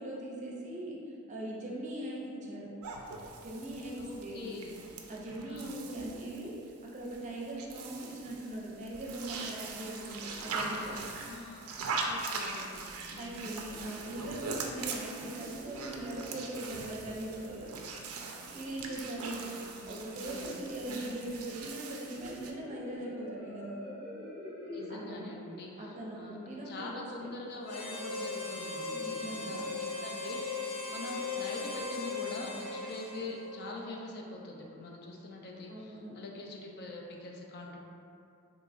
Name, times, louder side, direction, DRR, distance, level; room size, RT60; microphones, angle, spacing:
voice 1, 0.0-2.7 3.4-4.5 5.1-11.0 13.2-17.8 18.5-19.4 19.8-23.9 24.9-25.3 25.8-27.3 28.9-29.7 35.7-36.1, right 1 dB, 35° right, -4 dB, 0.5 m, -40 dB
sound 1, 2.8-22.5, right 4 dB, 85° right, 0.4 m, -41 dB
voice 2, 3.9-4.8 5.5-5.8 10.5-11.7 12.0-13.4 19.2-20.6 20.9-21.1 24.7-26.4 26.7-37.8, left 2 dB, 50° left, 0 dB, 0.4 m, -44 dB
sound 2, 14.2-27.8, left 1 dB, 25° left, 1.2 m, -49 dB
Harmonica, 27.6-33.6, left 3 dB, 75° left, 1.1 m, -38 dB
3.7 x 2.8 x 2.4 m, 2.6 s
head